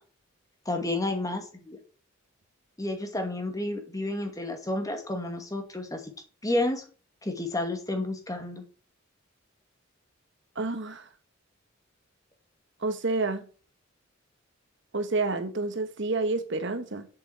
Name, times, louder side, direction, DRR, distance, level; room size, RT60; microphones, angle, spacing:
voice 1, 0.7-1.8 2.8-6.0 6.4-6.8 7.2-8.6, left 2 dB, 15° left, 2.3 m, -30 dB
voice 2, 10.5-11.1 12.8-13.5 14.9-17.1, right 3 dB, 60° right, 1.4 m, -29 dB
8.0 x 7.5 x 8.0 m
head